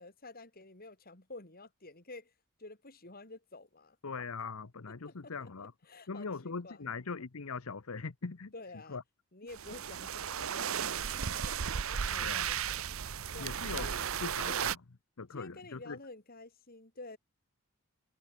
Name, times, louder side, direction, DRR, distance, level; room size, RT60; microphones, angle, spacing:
voice 1, 0.0-2.3 2.6-4.0 5.0-6.9 8.5-9.0 9.3-12.9 13.3-14.1 14.5-14.7 15.3-17.2, left 2 dB, 45° left, 4.0 m, -50 dB
voice 2, 4.0-5.7 6.1-8.5 8.9-9.0 12.2-12.5 13.4-13.9 14.2-14.8 15.2-16.0, left 4 dB, 80° left, 0.9 m, -40 dB
sound 1, 9.5-14.7, right 8 dB, 70° right, 0.8 m, -35 dB
head